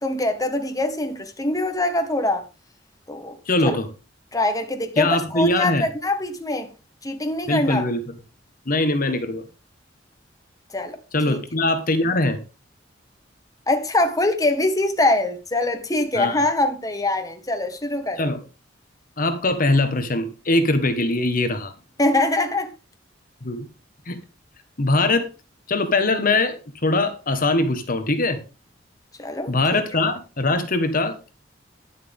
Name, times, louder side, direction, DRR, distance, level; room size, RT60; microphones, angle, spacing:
voice 1, 0.0-2.4 3.1-3.4 3.6-3.8 4.3-6.7 7.0-7.9 10.7-11.0 11.3-11.4 13.7-18.3 22.0-22.7 29.2-29.8, left 2 dB, 20° left, 1.5 m, -23 dB
voice 2, 3.5-3.9 5.0-5.8 7.5-8.0 8.7-9.4 11.1-12.4 16.1-16.4 18.2-18.4 19.2-21.7 23.4-23.6 24.1-24.2 24.8-25.3 25.7-28.4 29.5-31.3, left 2 dB, 50° left, 1.4 m, -22 dB
11.0 x 11.0 x 3.5 m
head